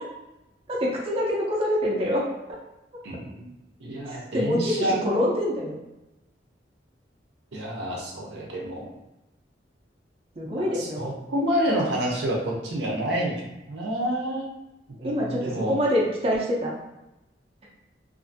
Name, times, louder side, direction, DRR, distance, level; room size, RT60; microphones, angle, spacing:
voice 1, 0.7-2.2 4.1-5.7 10.4-11.1 15.0-16.7, equal, 35° right, -4 dB, 0.5 m, -25 dB
voice 2, 3.0-3.5 3.8-5.0 7.5-8.9 10.6-14.5 15.0-15.8, right 1 dB, 75° right, -2 dB, 0.6 m, -28 dB
2.5 x 2.5 x 2.5 m, 0.95 s
head